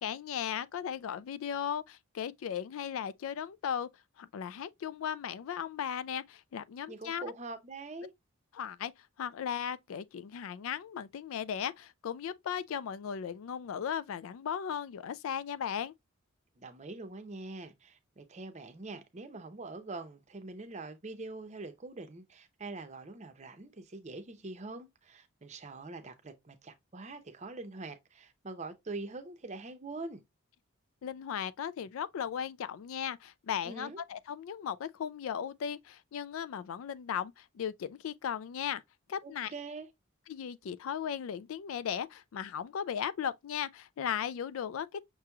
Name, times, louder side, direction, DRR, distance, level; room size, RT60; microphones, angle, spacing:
voice 1, 0.0-3.9 4.2-7.3 8.5-8.9 9.2-15.9 31.0-38.8 39.1-39.5 40.3-45.0, left 8 dB, 70° left, 0.3 m, -36 dB
voice 2, 6.9-8.1 16.6-30.2 33.6-34.0 39.2-39.9, right 3 dB, 35° right, 0.6 m, -44 dB
5.9 x 3.0 x 2.3 m
head